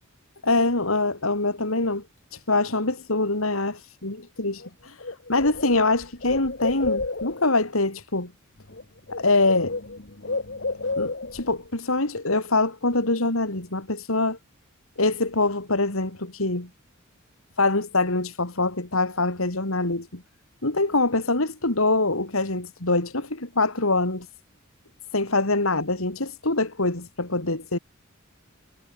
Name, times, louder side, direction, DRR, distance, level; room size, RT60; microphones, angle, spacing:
voice 1, 0.4-2.0 2.3-8.3 9.1-9.8 11.0-14.4 15.0-16.7 17.6-20.2 20.6-24.3 25.1-27.8, left 2 dB, 75° left, 3.6 m, -24 dB
Bird, 4.6-4.7 5.0-7.5 8.6-8.8 9.1-11.5, left 3 dB, 55° left, 1.9 m, -31 dB
head